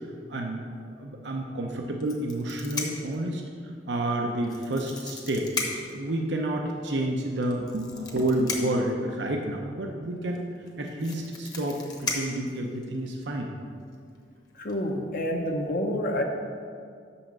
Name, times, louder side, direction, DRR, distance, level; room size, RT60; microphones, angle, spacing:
voice 1, 0.3-0.6 1.0-3.4 3.9-5.5 5.9-10.5 10.8-13.5, right 1 dB, 80° right, 1 dB, 0.8 m, -29 dB
sound 1, 2.0-3.1 4.4-6.0 7.4-8.9 10.3-10.4 10.7-13.1 13.9-14.2 14.5-14.7, left 3 dB, 20° left, 1.0 m, -35 dB
voice 2, 14.5-16.2, left 1 dB, 50° left, 3 dB, 0.9 m, -28 dB
6.5 x 5.6 x 7.2 m, 2.2 s
head